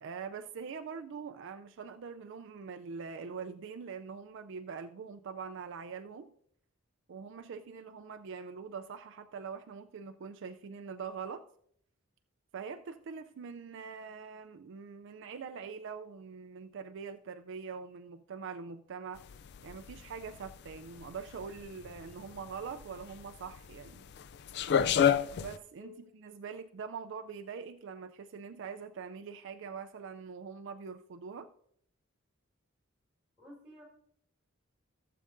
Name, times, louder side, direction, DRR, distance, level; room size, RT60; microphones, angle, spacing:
voice 1, 0.0-6.3 7.1-11.4 12.5-19.2 19.6-24.0 25.3-31.5, right 5 dB, 60° right, 8 dB, 0.4 m, -43 dB
sound 1, 19.2-25.6, left 8 dB, 55° left, 0.4 m, -31 dB
voice 2, 33.4-33.8, left 2 dB, 5° right, -2 dB, 4.1 m, -51 dB
16.0 x 7.6 x 2.6 m, 0.67 s
head